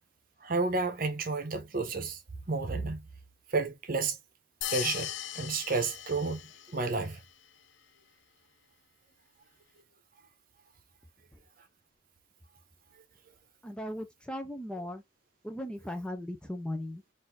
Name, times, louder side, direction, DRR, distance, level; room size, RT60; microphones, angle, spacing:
voice 1, 0.4-2.2 2.5-3.1 3.5-4.2 4.7-6.4 6.7-7.2, right 3 dB, 45° right, 0.9 m, -31 dB
sound 1, 4.6-6.9, left 13 dB, 70° left, 0.4 m, -38 dB
voice 2, 13.6-15.0 15.4-17.0, left 1 dB, 5° left, 0.5 m, -37 dB
4.2 x 2.6 x 3.4 m
head